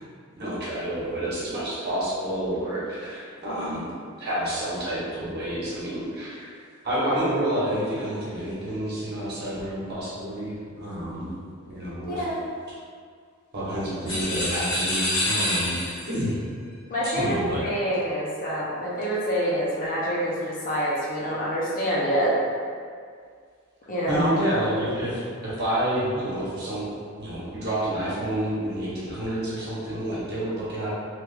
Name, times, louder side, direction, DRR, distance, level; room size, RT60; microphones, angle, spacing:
voice 1, 0.4-3.9 4.2-6.5 6.8-11.3 11.6-12.2 13.5-15.8 16.0-16.4 17.0-17.6 24.1-26.9 27.2-30.9, right 1 dB, 50° right, -9 dB, 1.0 m, -29 dB
voice 2, 3.5-3.8 12.1-12.4 16.9-22.4 23.9-24.4, equal, 40° left, -6 dB, 0.6 m, -26 dB
sound 1, 14.1-16.2, left 1 dB, 65° left, 1.4 m, -27 dB
3.0 x 2.4 x 3.3 m, 2.1 s
head